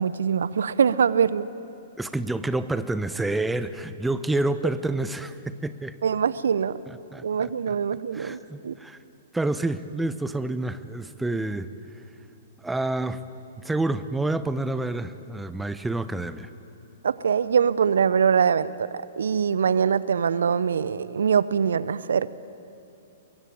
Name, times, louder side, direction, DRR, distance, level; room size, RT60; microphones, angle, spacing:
voice 1, 0.0-1.5 6.0-6.8 7.2-8.8 17.0-22.3, right 7 dB, 70° right, 17 dB, 0.7 m, -23 dB
voice 2, 2.0-6.0 6.9-7.7 8.1-9.0 9.3-11.7 12.6-13.2 13.6-16.5, right 2 dB, 5° right, 12 dB, 1.0 m, -28 dB
24.0 x 22.0 x 8.7 m, 2.7 s
figure-of-eight pair, 115°, 0 cm